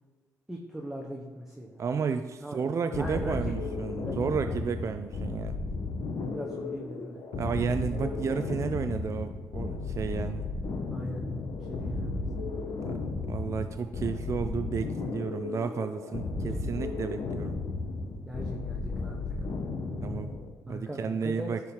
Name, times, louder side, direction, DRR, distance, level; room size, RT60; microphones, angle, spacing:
voice 1, 0.5-1.8 2.4-3.5 4.0-4.2 4.4-4.6 5.0-5.1 6.3-7.2 7.9-8.0 10.9-11.3 11.6-12.4 16.4-16.6 18.3-19.5 20.7-21.5, right 1 dB, 5° right, -1 dB, 1.0 m, -40 dB
voice 2, 1.8-5.6 7.4-10.4 12.9-17.5 20.0-20.3 20.7-21.6, right 6 dB, 45° right, 8 dB, 0.4 m, -32 dB
sound 1, 2.9-20.5, left 3 dB, 65° left, 1.0 m, -34 dB
11.0 x 4.6 x 3.6 m, 1.3 s
supercardioid pair, 65°, 7 cm